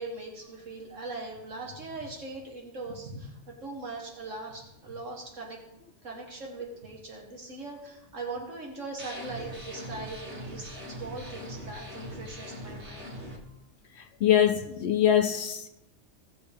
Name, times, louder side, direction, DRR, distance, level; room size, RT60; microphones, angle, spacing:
voice 1, 0.0-5.6 6.0-13.6 14.5-14.6, right 3 dB, 75° right, 1.9 m, -40 dB
sound 1, 9.0-13.4, equal, 60° right, 2.2 m, -41 dB
voice 2, 14.2-15.7, left 10 dB, 65° left, 0.8 m, -23 dB
17.5 x 6.9 x 3.5 m
omnidirectional pair, 1.3 m